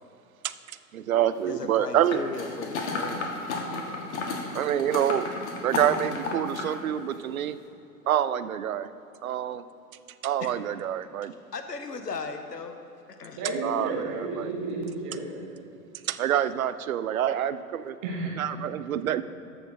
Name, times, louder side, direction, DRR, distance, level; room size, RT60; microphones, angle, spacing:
voice 1, 0.9-2.2 4.5-5.3 5.6-7.6 8.1-8.9 9.2-9.6 10.2-11.3 13.6-14.5 16.0-18.0 18.4-19.2, right 10 dB, 60° right, 14 dB, 0.5 m, -27 dB
voice 2, 1.5-3.6 10.4-10.5 11.5-12.8 13.2-13.4 17.3-17.4, left 4 dB, 85° left, 7 dB, 0.8 m, -37 dB
sound 1, 2.1-6.7 7.1-7.2, left 3 dB, 45° left, 1.4 m, -33 dB
voice 3, 13.4-15.4 18.0-18.3, right 3 dB, 10° right, -2 dB, 0.4 m, -32 dB
13.5 x 6.3 x 3.7 m, 2.8 s
figure-of-eight pair, 105°, 47 cm